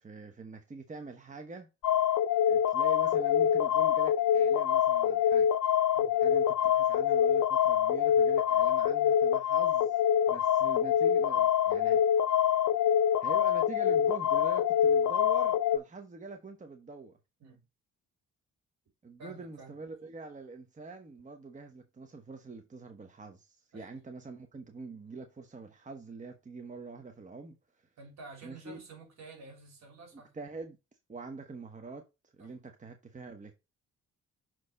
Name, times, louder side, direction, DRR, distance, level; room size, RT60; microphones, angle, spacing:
voice 1, 0.0-1.7 2.5-5.5 6.2-10.0 10.3-12.0 13.2-17.2 19.0-27.9 28.4-28.8 30.1-30.8 31.1-33.5, right 3 dB, 25° right, 1.1 m, -45 dB
sound 1, 1.8-15.8, left 9 dB, 65° left, 0.5 m, -25 dB
voice 2, 19.2-19.8 23.7-24.0 28.0-30.3 32.4-32.5, right 3 dB, 60° right, 3.6 m, -51 dB
6.4 x 4.3 x 4.3 m
cardioid pair, 90°, 30 cm